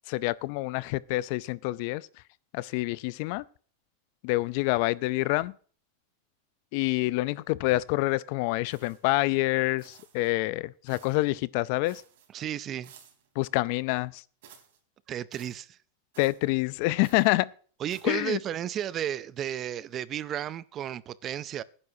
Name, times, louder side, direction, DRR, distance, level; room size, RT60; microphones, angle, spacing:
voice 1, 0.1-2.1 2.5-3.4 4.2-5.5 6.7-12.0 13.4-14.2 16.2-17.5 18.0-18.4, left 20 dB, 45° left, 0.4 m, -27 dB
Footsteps Mountain Boots Frozen Grass Mono, 8.7-9.2 9.8-10.3 10.9-11.3 11.8-12.3 12.8-13.3 14.4-14.8 15.3-15.6 16.1-16.5 17.0-17.4 17.9-18.3, right 8 dB, 65° right, 3.5 m, -55 dB
voice 2, 12.3-12.9 15.1-15.8 17.8-21.6, right 10 dB, 25° right, 0.4 m, -33 dB
18.5 x 9.8 x 2.7 m
supercardioid pair, 170°, 0 cm